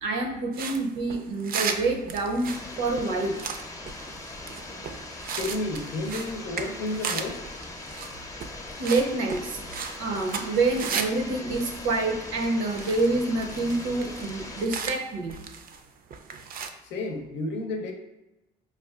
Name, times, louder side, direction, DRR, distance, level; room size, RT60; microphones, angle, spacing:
voice 1, 0.0-3.4 8.8-9.6 10.0-15.3, right 3 dB, 85° right, 2 dB, 0.7 m, -27 dB
sound 1, 0.5-11.2 11.5-13.1 13.4-15.8 16.1-16.7, right 6 dB, 55° right, 0.4 m, -36 dB
sound 2, 2.5-14.7, left 2 dB, 20° left, 0.7 m, -40 dB
voice 2, 5.4-7.5 16.8-17.9, left 2 dB, 75° left, 3 dB, 0.7 m, -31 dB
4.7 x 2.3 x 2.4 m, 0.97 s
supercardioid pair, 75°, 19 cm